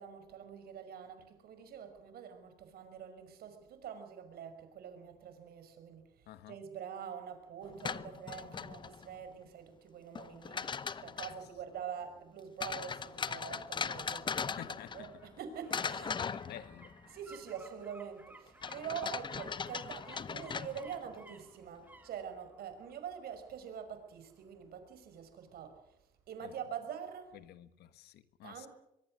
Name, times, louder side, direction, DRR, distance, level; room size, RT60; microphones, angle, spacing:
voice 1, 0.0-6.0 6.5-14.5 14.9-16.2 17.1-25.8 26.3-27.4 28.4-28.7, right 8 dB, 65° right, 5.5 m, -45 dB
voice 2, 6.3-6.6 11.2-11.4 14.6-15.1 16.2-16.9 26.4-26.5 27.3-28.7, left 12 dB, 75° left, 1.5 m, -50 dB
sound 1, 7.6-9.2 10.1-11.5 12.6-15.4 15.7-17.1 18.6-21.2, left 6 dB, 30° left, 0.8 m, -39 dB
sound 2, 13.0-25.6 25.9-26.0, right 2 dB, 10° right, 3.6 m, -60 dB
23.5 x 23.0 x 6.4 m
cardioid pair, 110°, 17 cm